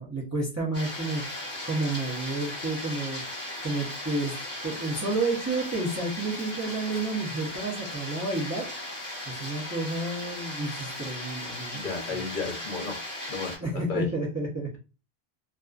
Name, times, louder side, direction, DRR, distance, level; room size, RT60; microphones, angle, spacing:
voice 1, 0.0-3.2 3.6-4.3 4.6-8.7 9.3-11.8 12.1-12.2 13.6-14.8, right 2 dB, 20° right, -2 dB, 0.4 m, -30 dB
sound 1, 0.7-13.6, left 1 dB, 10° left, 1.0 m, -37 dB
voice 2, 11.7-13.0 13.3-14.1, left 4 dB, 55° left, 1 dB, 0.7 m, -33 dB
2.4 x 2.3 x 2.3 m, 0.31 s
omnidirectional pair, 1.1 m